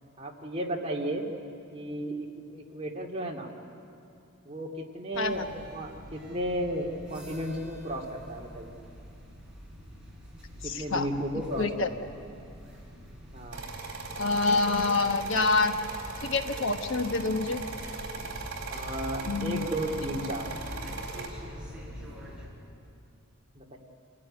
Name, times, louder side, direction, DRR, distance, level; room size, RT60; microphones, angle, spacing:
voice 1, 0.2-1.3 1.7-3.5 4.4-8.7 10.6-11.7 12.0-12.1 13.3-13.7 18.7-20.5 23.5-23.8, right 1 dB, 30° right, -1 dB, 2.4 m, -34 dB
sound 1, 5.1-22.5, equal, 5° right, 5.2 m, -45 dB
voice 2, 10.6-11.1 11.6-11.9 14.2-15.8 16.2-17.6 19.3-19.7, left 3 dB, 60° left, 6 dB, 1.2 m, -27 dB
sound 2, 13.5-21.3, right 3 dB, 50° right, 4.1 m, -39 dB
28.0 x 16.0 x 9.9 m, 2.6 s
head